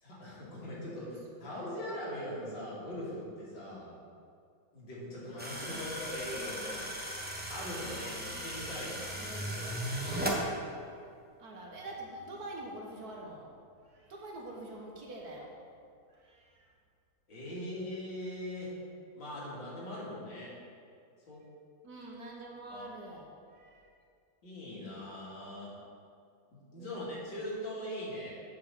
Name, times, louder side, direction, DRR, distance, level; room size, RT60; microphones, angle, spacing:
voice 1, 0.0-3.9 4.7-6.6 7.5-9.2 17.3-18.7 19.1-20.5 21.3-21.4 22.7-23.2 24.4-25.7 26.5-28.3, left 1 dB, 75° left, -7 dB, 3.1 m, -41 dB
voice 2, 1.5-1.8 5.7-5.9 6.6-7.0 9.2-9.8 11.4-13.5 13.8-15.6 16.1-16.7 21.8-23.9 26.7-27.2, right 1 dB, 55° right, -1 dB, 1.6 m, -46 dB
sound 1, 5.4-10.4, right 1 dB, 5° right, 0.8 m, -37 dB
8.6 x 5.2 x 6.9 m, 2.3 s
omnidirectional pair, 2.1 m